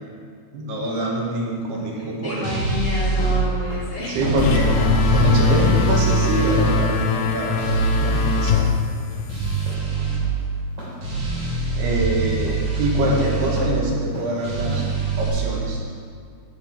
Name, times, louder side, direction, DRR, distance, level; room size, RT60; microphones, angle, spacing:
voice 1, 0.5-2.5 4.1-4.6 5.1-8.7 11.8-14.8 15.2-15.8, right 1 dB, 85° right, -3 dB, 3.6 m, -25 dB
sound 1, 0.8-15.2, right 1 dB, 30° right, 3.3 m, -39 dB
voice 2, 1.9-4.7 5.2-5.4 9.8-10.2, left 2 dB, 55° left, -9 dB, 4.2 m, -31 dB
sound 2, 2.4-3.4 4.2-6.8 7.6-8.5 9.3-10.2 11.0-13.6 14.4-15.3, right 4 dB, 60° right, 4.4 m, -23 dB
sound 3, 4.4-9.7, left 7 dB, 85° left, 1.8 m, -22 dB
10.0 x 8.9 x 4.4 m, 2.2 s
omnidirectional pair, 4.5 m